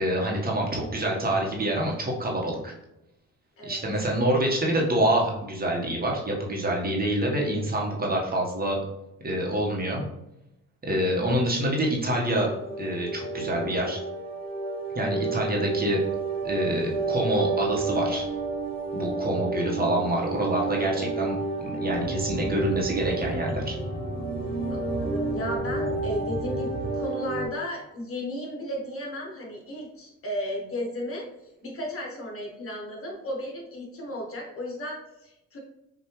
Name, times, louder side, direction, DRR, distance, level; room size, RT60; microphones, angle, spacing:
voice 1, 0.0-2.7 3.7-8.8 9.2-10.0 10.8-12.5 12.8-14.0 14.9-16.0 16.4-18.3 18.9-21.4 21.8-23.7, right 1 dB, 30° right, -2 dB, 1.3 m, -26 dB
sound 1, 12.2-27.5, right 3 dB, 20° left, 1.3 m, -31 dB
voice 2, 21.0-21.4 24.7-31.3 31.6-35.6, left 1 dB, 45° left, -1 dB, 1.5 m, -34 dB
Boat Water vehicle, 21.9-27.0, left 1 dB, ahead, 0.6 m, -36 dB
5.5 x 2.7 x 3.1 m, 0.88 s
cardioid pair, 90°, 30 cm